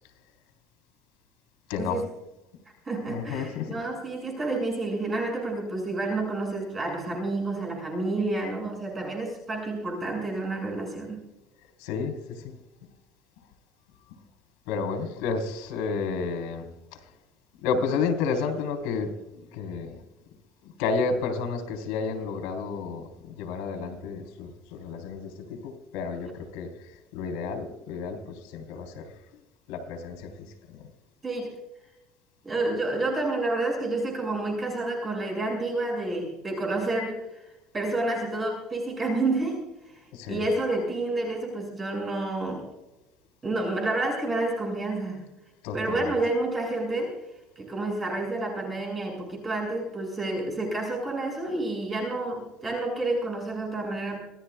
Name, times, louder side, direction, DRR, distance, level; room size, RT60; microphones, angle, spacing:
voice 1, 1.7-2.0 3.1-3.7 11.8-12.1 14.7-16.7 17.6-19.1 19.5-20.0 20.8-26.7 27.1-29.1 29.7-30.3 30.7-30.8 40.1-40.4 45.6-46.2, left 5 dB, 90° left, 6 dB, 3.9 m, -31 dB
voice 2, 2.8-11.2 31.2-31.5 32.4-42.7 43.4-45.3 45.7-47.2 47.6-54.2, right 2 dB, 20° right, 0 dB, 6.5 m, -29 dB
26.5 x 18.5 x 2.4 m, 0.99 s
cardioid pair, 155°, 0 cm